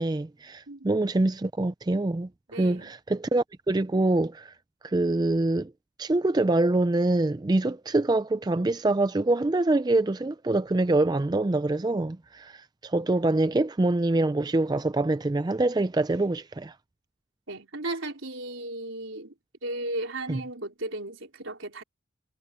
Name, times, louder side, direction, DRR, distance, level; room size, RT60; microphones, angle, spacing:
voice 1, 0.0-2.3 2.6-4.5 4.8-5.7 6.0-16.7 20.3-20.4, right 2 dB, 20° right, 0.4 m, -25 dB
voice 2, 2.5-2.9 17.5-19.3 19.6-21.8, right 2 dB, 75° right, 4.0 m, -35 dB
head